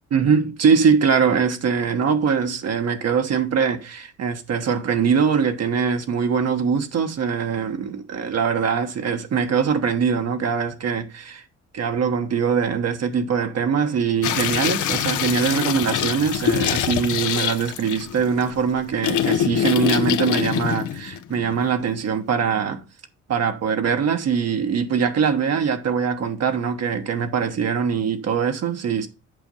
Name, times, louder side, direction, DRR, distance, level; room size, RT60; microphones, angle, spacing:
voice 1, 0.1-11.4 11.7-22.8 23.3-29.1, right 6 dB, 55° right, 1.1 m, -22 dB
sound 1, 14.2-21.8, left 10 dB, 75° left, 0.9 m, -24 dB
8.0 x 5.2 x 5.2 m
cardioid pair, 90°, 30 cm